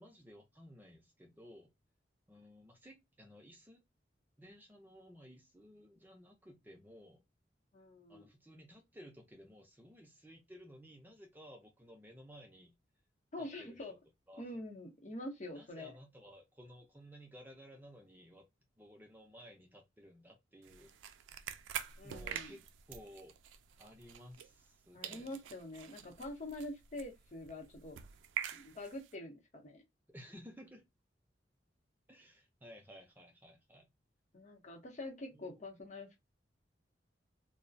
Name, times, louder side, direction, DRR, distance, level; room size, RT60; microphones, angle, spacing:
voice 1, 0.0-1.7 2.3-3.8 4.4-7.2 8.1-12.7 13.4-14.0 14.3-14.5 15.5-18.5 18.8-20.9 22.0-23.3 23.8-25.3 30.1-30.9 32.1-33.9 35.3-35.6, equal, 10° right, 0.5 m, -56 dB
voice 2, 7.7-8.3 13.3-13.9 14.4-15.9 22.0-22.5 24.9-28.0 28.5-29.8 34.3-36.2, left 1 dB, 40° left, 0.8 m, -45 dB
sound 1, 20.6-24.8 25.0-29.1, right 9 dB, 90° right, 0.3 m, -46 dB
2.3 x 2.1 x 2.4 m
head